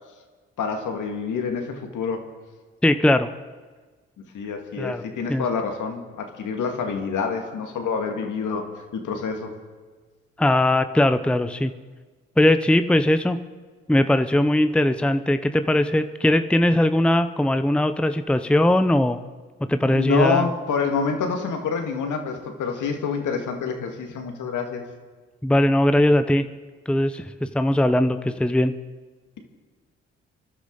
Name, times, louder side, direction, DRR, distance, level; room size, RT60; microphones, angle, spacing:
voice 1, 0.6-2.2 4.3-8.7 8.9-9.5 19.8-24.8, left 5 dB, 60° left, 4 dB, 2.3 m, -27 dB
voice 2, 2.8-3.3 4.8-5.0 5.3-5.4 10.4-11.7 12.4-13.4 13.9-19.2 19.7-20.5 25.4-26.5 26.9-28.8, left 1 dB, 5° left, 10 dB, 0.8 m, -20 dB
29.5 x 11.5 x 4.1 m, 1.4 s
hypercardioid pair, 45°, 34 cm